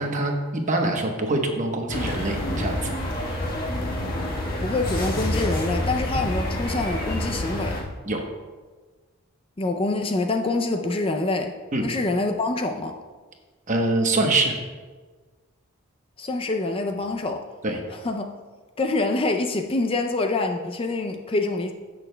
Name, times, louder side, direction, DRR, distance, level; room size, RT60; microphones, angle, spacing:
voice 1, 0.0-2.9 3.2-3.4 8.1-8.2 11.7-11.9 13.7-14.6 17.6-17.8, right 2 dB, 35° right, 3 dB, 1.0 m, -24 dB
sound 1, 1.9-7.8, left 1 dB, 40° left, 1.4 m, -28 dB
voice 2, 4.6-7.8 9.6-11.5 11.8-13.0 16.2-17.4 18.0-18.3 18.8-21.7, left 2 dB, 25° left, 5 dB, 0.4 m, -25 dB
15.5 x 6.3 x 2.2 m, 1.4 s
head